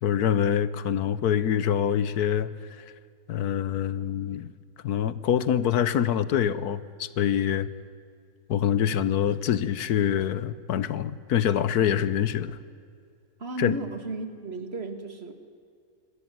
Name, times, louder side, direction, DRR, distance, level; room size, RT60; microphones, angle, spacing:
voice 1, 0.0-2.5 3.3-4.5 4.8-7.7 8.5-12.6 13.6-13.8, left 9 dB, 80° left, 16 dB, 1.4 m, -25 dB
voice 2, 13.4-15.3, right 3 dB, 40° right, 8 dB, 2.2 m, -34 dB
25.0 x 18.5 x 9.4 m, 2.3 s
omnidirectional pair, 1.6 m